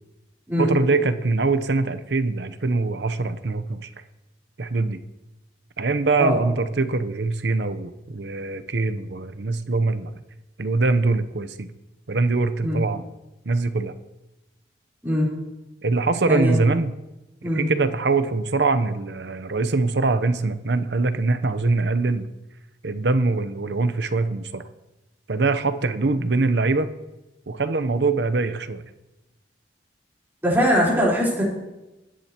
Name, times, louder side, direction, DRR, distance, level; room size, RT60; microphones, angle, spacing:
voice 1, 0.6-3.9 4.6-5.0 5.8-10.1 10.6-11.7 12.1-13.0 13.4-13.9 15.8-16.9 17.5-22.3 22.8-24.6 25.3-26.9 27.5-28.8, right 3 dB, 80° right, 11 dB, 0.8 m, -23 dB
voice 2, 30.4-31.4, equal, 10° right, -6 dB, 4.2 m, -21 dB
23.0 x 10.5 x 3.0 m, 1.0 s
head